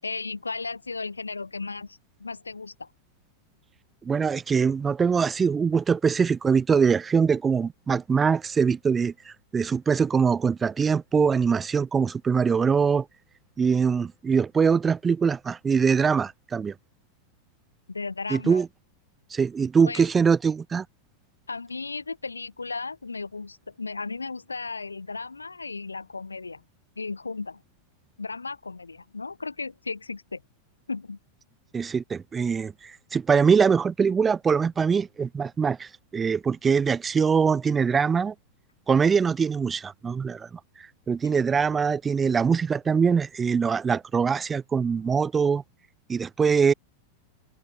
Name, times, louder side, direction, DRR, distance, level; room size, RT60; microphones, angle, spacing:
voice 1, 0.0-2.9 17.9-18.6 19.9-20.0 21.5-26.6 27.0-27.6 28.2-30.4 30.9-31.2, left 4 dB, 80° left, 6.7 m, -35 dB
voice 2, 4.0-13.1 13.6-16.7 18.3-18.7 19.3-20.8 31.7-38.3 38.9-40.5 41.1-45.6 46.1-46.7, right 6 dB, 20° right, 2.4 m, -23 dB
figure-of-eight pair, 90°, 0 cm